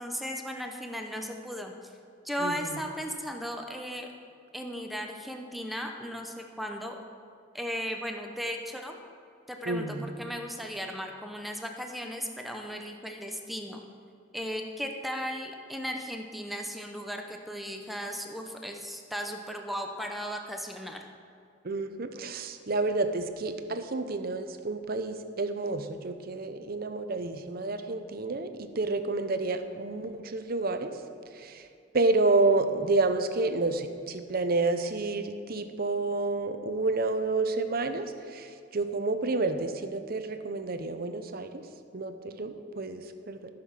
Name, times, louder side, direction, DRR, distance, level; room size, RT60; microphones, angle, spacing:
voice 1, 0.0-1.9 2.2-4.1 4.5-7.0 7.5-8.9 9.5-13.8 14.3-21.0, equal, ahead, 3 dB, 0.8 m, -36 dB
voice 2, 2.4-2.7 9.6-10.1 21.6-30.9 31.3-31.6 31.9-41.6 41.9-43.5, right 3 dB, 55° right, 8 dB, 0.7 m, -29 dB
13.5 x 6.7 x 5.8 m, 2.5 s
head